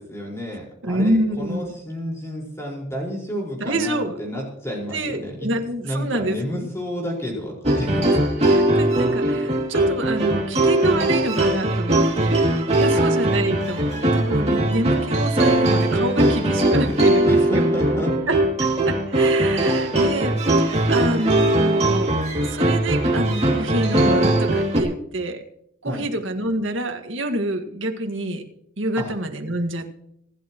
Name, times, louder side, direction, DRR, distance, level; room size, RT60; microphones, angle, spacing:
voice 1, 0.0-5.5 5.8-8.2 12.8-13.0 17.2-18.2 25.8-26.0 29.0-29.1, equal, 15° left, -2 dB, 5.0 m, -30 dB
voice 2, 0.8-1.7 3.6-4.2 4.9-6.7 8.5-12.4 12.7-17.4 18.3-25.4 25.8-28.4 28.8-29.9, right 1 dB, 70° right, 5 dB, 1.9 m, -27 dB
sound 1, 7.6-24.8, right 1 dB, 30° right, 2.7 m, -20 dB
26.0 x 11.0 x 3.1 m, 0.73 s
head